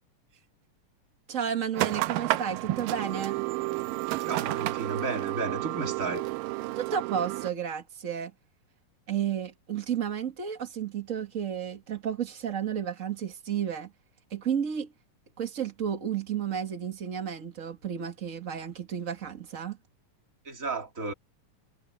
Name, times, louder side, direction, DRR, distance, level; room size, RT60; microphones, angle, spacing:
voice 1, 1.3-3.5 6.8-8.3 9.1-13.9 14.3-14.9 15.4-19.8, right 8 dB, 65° right, 0.7 m, -32 dB
sound 1, 1.7-7.5, right 18 dB, 90° right, 2.4 m, -31 dB
voice 2, 4.2-6.2 20.4-21.1, right 4 dB, 25° right, 2.4 m, -33 dB
omnidirectional pair, 3.9 m